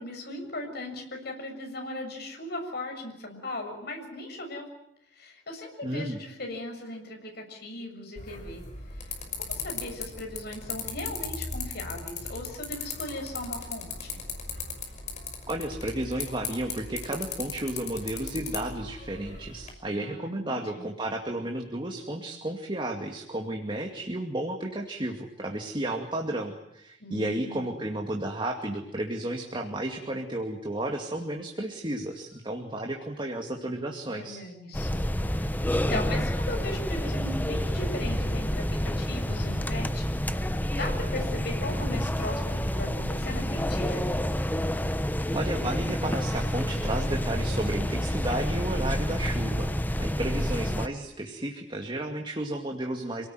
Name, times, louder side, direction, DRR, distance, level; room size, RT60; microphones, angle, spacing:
voice 1, 0.0-4.7 5.2-8.6 9.0-9.1 9.3-14.2 19.9-20.9 27.0-27.7 34.1-34.9 35.4-44.1, left 1 dB, 60° left, 2 dB, 7.1 m, -38 dB
voice 2, 5.8-6.2 15.5-34.4 45.3-53.3, right 1 dB, 25° right, 2 dB, 2.3 m, -33 dB
sound 1, 8.2-19.7, left 4 dB, 40° left, 5.8 m, -38 dB
sound 2, 34.7-50.9, equal, 10° left, 1.0 m, -29 dB
28.0 x 18.5 x 9.4 m, 0.77 s
head